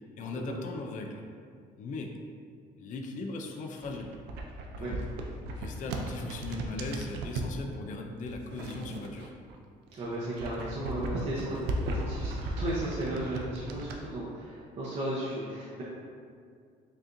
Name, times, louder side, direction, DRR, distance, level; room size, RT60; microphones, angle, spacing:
voice 1, 0.2-1.2 1.8-2.1 2.8-4.1 4.7-5.0 5.5-9.3, left 3 dB, 50° left, 3 dB, 0.4 m, -38 dB
sound 1, 3.7-7.5 8.2-9.6 9.9-14.0, right 1 dB, 90° right, 0.4 m, -36 dB
voice 2, 9.9-11.6 11.9-15.8, right 1 dB, 40° right, -7 dB, 0.7 m, -35 dB
5.2 x 2.5 x 2.5 m, 2.2 s
cardioid pair, 110°, 17 cm